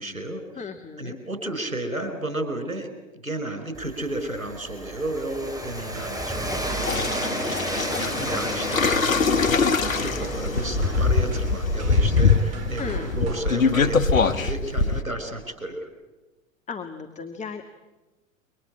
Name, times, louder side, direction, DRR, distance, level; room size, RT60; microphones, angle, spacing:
voice 1, 0.0-0.4 1.0-2.9 3.2-9.5 10.0-15.9, right 1 dB, 90° right, 8 dB, 4.4 m, -33 dB
voice 2, 0.6-1.2 6.5-6.6 12.8-13.1 16.7-17.6, left 5 dB, 15° left, 5 dB, 1.9 m, -35 dB
Train, 3.7-13.6, right 1 dB, 10° right, 4.9 m, -33 dB
sound 1, 5.9-14.1, right 3 dB, 40° right, 3.4 m, -40 dB
sound 2, 6.8-15.0, left 4 dB, 80° left, 1.4 m, -23 dB
28.5 x 24.5 x 8.4 m, 1.1 s
figure-of-eight pair, 90°, 40 cm